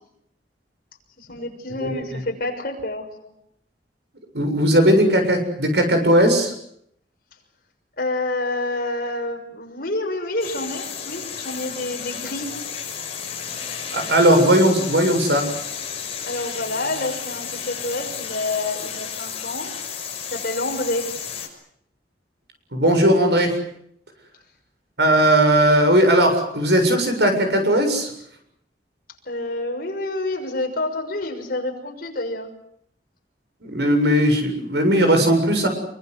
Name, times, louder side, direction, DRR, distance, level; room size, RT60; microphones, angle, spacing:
voice 1, 1.2-3.3 8.0-12.5 16.3-19.7 20.3-21.2 29.2-32.5, left 2 dB, 55° left, 3 dB, 6.4 m, -28 dB
voice 2, 4.3-6.5 13.9-15.5 22.7-23.6 25.0-28.1 33.6-35.7, right 1 dB, 70° right, 6 dB, 7.5 m, -17 dB
sound 1, 10.4-21.5, left 7 dB, 35° left, 6.4 m, -32 dB
27.5 x 24.0 x 8.1 m, 0.71 s
head